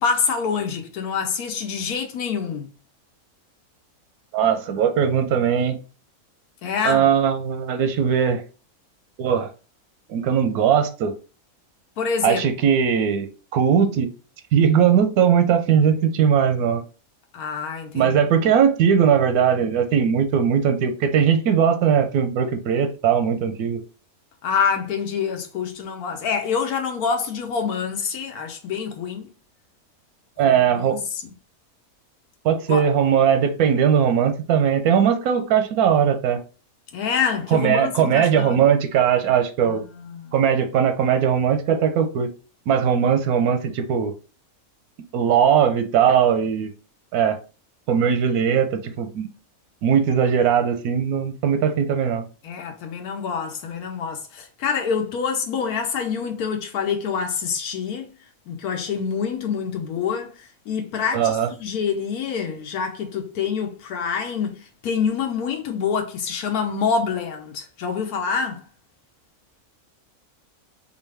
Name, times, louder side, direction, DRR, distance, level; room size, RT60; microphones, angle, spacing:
voice 1, 0.0-2.7 6.6-7.0 12.0-12.5 17.3-18.2 24.4-29.3 30.5-31.3 32.7-32.8 36.9-38.6 39.6-40.3 52.4-58.1 58.5-68.6, left 6 dB, 85° left, 1.2 m, -26 dB
voice 2, 4.3-5.8 6.8-8.4 9.2-9.5 10.1-11.1 12.2-14.1 14.5-16.8 17.9-23.8 30.4-31.0 32.4-36.4 37.5-39.8 40.3-42.3 42.7-44.1 45.1-46.7 47.1-47.4 47.9-49.3 49.8-52.2 61.1-61.5, right 8 dB, 90° right, 1.1 m, -19 dB
4.6 x 2.5 x 3.3 m
omnidirectional pair, 1.6 m